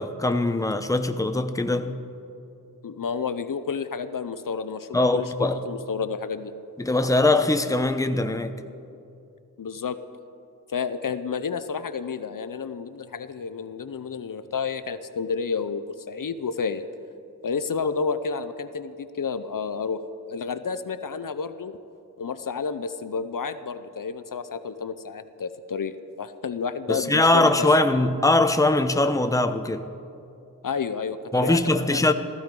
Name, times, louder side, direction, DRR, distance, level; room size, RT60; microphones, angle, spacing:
voice 1, 0.0-2.0 4.9-5.6 6.8-8.5 26.9-29.8 31.3-32.1, left 2 dB, 10° left, 0.7 m, -21 dB
voice 2, 2.8-6.5 9.6-10.0 10.7-16.9 17.4-20.0 20.3-21.8 22.2-27.7 30.6-32.1, left 5 dB, 60° left, 0.6 m, -30 dB
15.0 x 14.5 x 5.3 m
wide cardioid pair, 70°, 36 cm